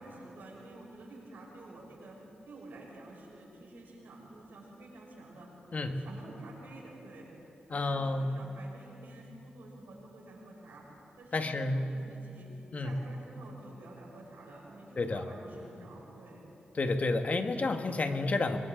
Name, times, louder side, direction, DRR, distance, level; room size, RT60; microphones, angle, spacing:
voice 1, 0.0-2.2 2.4-5.5 5.8-10.9 11.2-12.5 12.8-16.5, right 2 dB, 85° right, -4 dB, 6.7 m, -50 dB
voice 2, 7.7-8.4 11.3-11.9 12.7-13.0 15.0-15.3 16.7-18.6, left 2 dB, 50° left, 6 dB, 1.5 m, -30 dB
30.0 x 23.5 x 3.8 m, 3.0 s
cardioid pair, 60°, 3 cm